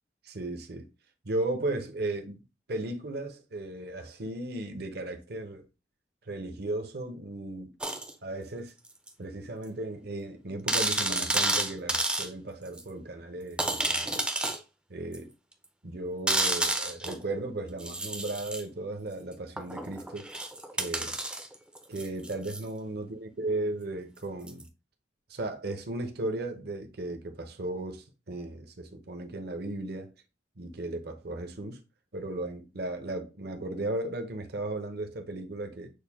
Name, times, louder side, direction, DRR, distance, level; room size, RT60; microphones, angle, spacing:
voice 1, 0.2-0.9 1.2-2.4 2.7-5.6 6.3-7.7 8.2-8.7 9.2-14.2 14.9-15.3 15.8-20.3 20.7-21.2 21.9-24.7 25.3-30.1 30.6-31.8 32.1-35.9, right 2 dB, 60° right, 0.8 m, -35 dB
sound 1, 7.8-8.1 9.1-9.2 9.6-9.7 10.0-10.1 10.7-12.3 12.8-12.9 13.6-14.6 15.1-15.2 16.3-17.2 17.8-18.6 19.6-22.6 24.5-24.6, right 2 dB, 5° right, 0.5 m, -30 dB
6.5 x 2.2 x 3.5 m
head